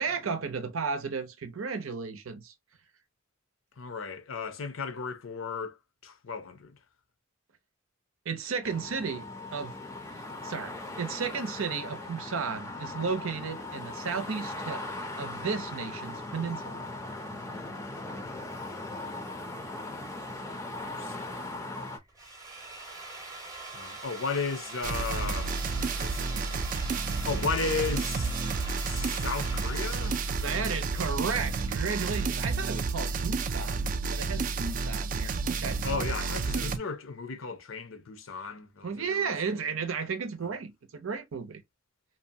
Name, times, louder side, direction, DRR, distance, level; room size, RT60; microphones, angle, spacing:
voice 1, 0.0-2.5 8.3-9.8 10.4-14.8 15.2-16.9 30.4-35.8 38.8-41.6, right 5 dB, 85° right, 0.6 m, -34 dB
voice 2, 3.8-5.8 6.0-6.8 19.9-20.2 20.8-21.8 23.7-26.7 27.2-28.3 28.9-30.2 35.8-39.7, left 5 dB, 75° left, 0.6 m, -35 dB
sound 1, 8.6-22.0, left 2 dB, 15° left, 0.5 m, -39 dB
Drill, 22.0-31.8, right 2 dB, 15° right, 0.7 m, -43 dB
sound 2, 24.8-36.8, right 4 dB, 40° right, 0.3 m, -31 dB
2.7 x 2.1 x 2.6 m
head